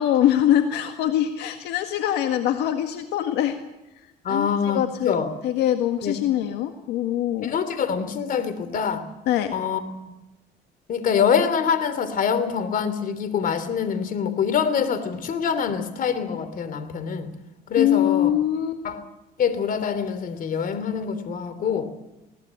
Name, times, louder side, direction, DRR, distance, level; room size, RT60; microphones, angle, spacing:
voice 1, 0.0-3.6 4.3-5.1 5.4-7.5 9.3-9.5 17.8-18.8, left 11 dB, 85° left, 6 dB, 1.8 m, -23 dB
voice 2, 4.2-5.3 6.0-6.1 7.4-9.1 9.5-9.8 10.9-17.3 17.7-18.3 18.8-19.0 19.4-21.9, left 7 dB, 55° left, 12 dB, 3.1 m, -25 dB
21.5 x 18.0 x 8.8 m, 1.0 s
cardioid pair, 110°, 17 cm